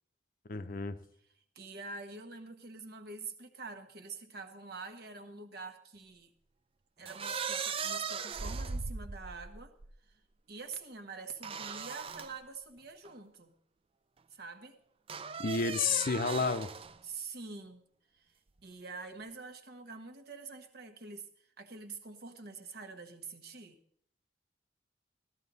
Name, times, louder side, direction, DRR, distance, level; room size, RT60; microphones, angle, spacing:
voice 1, 0.5-1.0 15.4-16.7, left 5 dB, 50° left, 11 dB, 0.6 m, -30 dB
voice 2, 1.5-6.3 7.0-9.7 10.0-10.1 10.5-13.5 14.3-14.8 15.8-16.1 17.0-17.8 18.1-18.3 18.6-23.8, right 4 dB, 60° right, 8 dB, 1.2 m, -46 dB
sound 1, 7.0-9.9 11.4-12.3 13.0-13.1 15.1-17.0, right 5 dB, 30° right, 0.4 m, -38 dB
13.5 x 13.5 x 4.0 m, 0.65 s
head